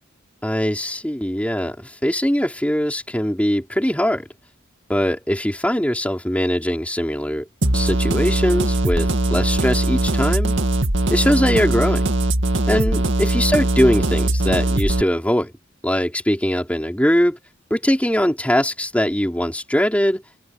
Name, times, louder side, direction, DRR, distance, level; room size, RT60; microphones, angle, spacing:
voice 1, 0.4-4.3 4.9-7.5 7.7-10.5 11.1-12.1 12.7-15.5 15.8-17.4 17.7-20.2, equal, 5° left, 4.4 m, -21 dB
sound 1, 7.6-15.0, right 1 dB, 70° right, 2.4 m, -20 dB
head